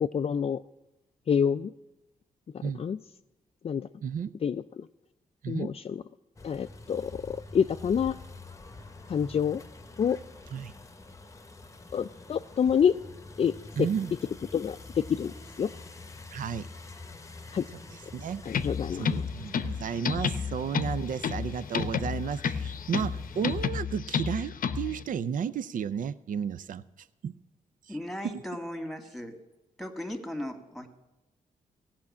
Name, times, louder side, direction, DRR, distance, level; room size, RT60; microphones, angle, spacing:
voice 1, 0.0-0.6 1.3-1.7 2.5-3.0 3.6-3.9 4.4-4.8 5.5-6.0 6.4-8.1 9.1-9.6 10.0-10.2 11.9-12.9 13.4-13.5 13.8-13.9 14.5-15.3 15.6-15.7 17.5-17.6 18.5-19.2, left 7 dB, 40° left, 9 dB, 0.4 m, -27 dB
voice 2, 4.0-4.3 5.4-5.7 10.5-10.7 13.8-14.1 16.3-16.7 18.1-18.4 19.0-26.8 27.2-27.4, right 7 dB, 65° right, 16 dB, 0.5 m, -33 dB
sound 1, 6.4-23.7, left 3 dB, 20° left, 0.9 m, -46 dB
sound 2, 18.5-25.0, left 6 dB, 70° left, 0.7 m, -31 dB
voice 3, 27.9-29.4 29.8-30.9, left 1 dB, ahead, 6 dB, 1.9 m, -37 dB
15.5 x 5.8 x 8.5 m, 1.0 s
cardioid pair, 65°, 15 cm